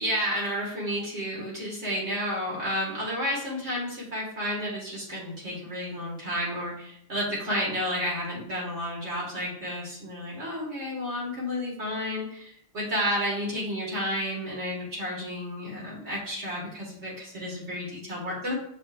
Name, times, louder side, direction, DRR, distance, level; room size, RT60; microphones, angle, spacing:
voice 1, 0.0-12.5 12.7-18.5, equal, 50° right, -4 dB, 2.3 m, -31 dB
6.4 x 6.2 x 2.5 m, 0.68 s
omnidirectional pair, 1.5 m